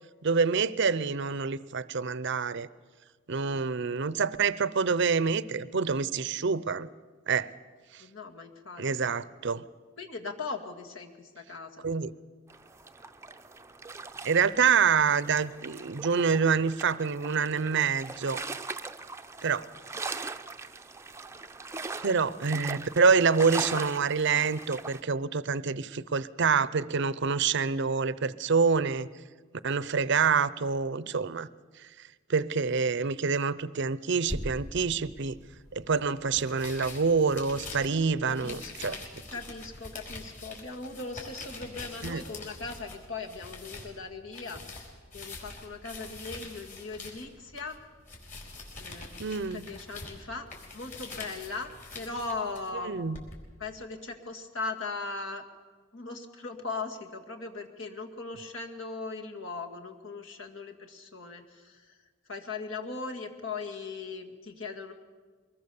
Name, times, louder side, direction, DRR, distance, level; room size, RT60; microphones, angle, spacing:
voice 1, 0.2-2.7 3.3-6.9 7.3-7.5 8.8-9.6 11.8-12.1 14.2-18.4 19.4-19.6 22.0-29.1 29.6-31.5 32.3-35.4 35.7-39.0 42.0-42.2 49.2-49.6 52.8-53.2, right 5 dB, 60° right, 17 dB, 0.7 m, -26 dB
voice 2, 8.0-9.1 10.0-12.1 38.3-39.0 39.3-44.6 45.1-47.8 48.8-50.5 50.7-53.0 53.6-55.4 55.9-61.8 62.3-64.9, left 3 dB, 70° left, 3 dB, 2.2 m, -39 dB
sound 1, 12.5-25.0, right 3 dB, 15° right, 0.6 m, -40 dB
sound 2, 34.3-53.4, left 2 dB, 40° left, 4.8 m, -44 dB
23.5 x 20.5 x 7.0 m, 1.4 s
head